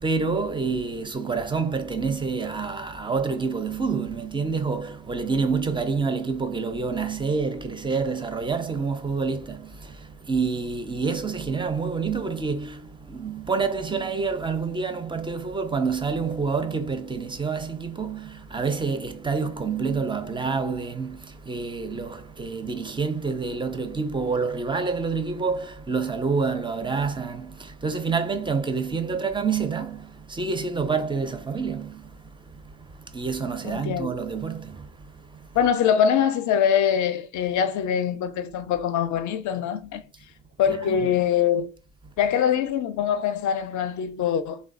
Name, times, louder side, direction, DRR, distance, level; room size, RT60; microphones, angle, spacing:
voice 1, 0.0-35.6 40.7-41.2, right 4 dB, 15° right, 0.4 m, -28 dB
voice 2, 33.6-34.1 35.5-40.0 40.6-41.7 42.2-44.6, left 8 dB, 50° left, 0.5 m, -23 dB
3.1 x 2.1 x 2.4 m
hypercardioid pair, 45°, 37 cm